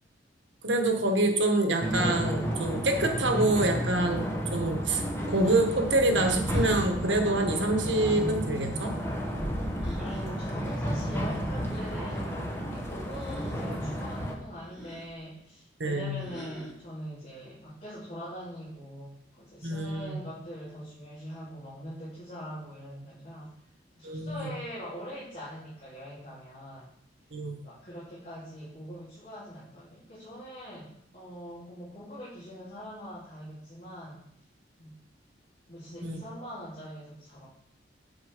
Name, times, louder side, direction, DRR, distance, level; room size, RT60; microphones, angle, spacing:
voice 1, 0.6-8.9 15.8-16.2 19.6-20.2 24.0-24.5 27.3-27.6 36.0-36.2, right 2 dB, 80° right, 4 dB, 1.4 m, -26 dB
sound 1, 1.8-14.3, equal, 15° left, 1.3 m, -32 dB
sound 2, 5.4-5.8 6.4-6.8 7.9-8.3 9.8-10.2 11.7-12.2 13.0-13.6 14.6-15.1 16.2-16.9, equal, 5° right, 3.9 m, -45 dB
voice 2, 9.9-23.5 24.0-26.9 27.6-34.2 34.8-34.9 35.7-37.5, equal, 45° left, -10 dB, 3.8 m, -43 dB
8.1 x 7.4 x 5.0 m, 0.72 s
head